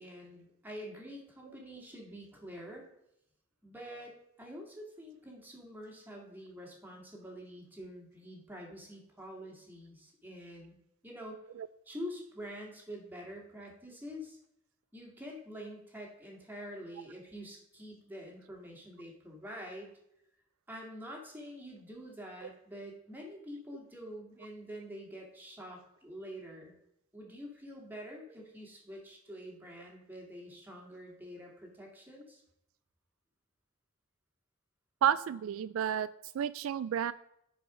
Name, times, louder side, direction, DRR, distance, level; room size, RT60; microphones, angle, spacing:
voice 1, 0.0-2.9 3.6-10.8 11.0-11.4 11.9-14.4 14.9-19.9 20.7-26.7 27.1-32.4, equal, 10° right, -1 dB, 2.3 m, -46 dB
voice 2, 35.0-36.1 36.3-37.1, right 9 dB, 75° right, 16 dB, 0.3 m, -31 dB
10.0 x 4.9 x 5.0 m, 0.79 s
head